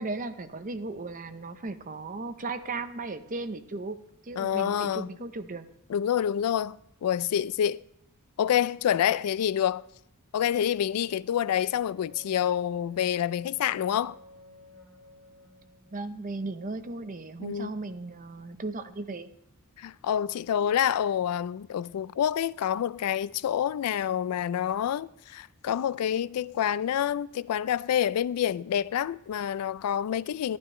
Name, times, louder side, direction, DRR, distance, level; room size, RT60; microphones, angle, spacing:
voice 1, 0.0-4.0 4.2-5.6 15.9-19.3, right 3 dB, 35° right, 0.7 m, -36 dB
voice 2, 4.4-5.1 5.9-7.8 8.4-9.8 10.3-14.2 17.4-17.7 19.8-30.6, left 9 dB, 80° left, 0.3 m, -27 dB
Wind instrument woodwind instrument, 11.9-16.0, left 1 dB, ahead, 5.3 m, -53 dB
12.5 x 11.0 x 3.2 m
head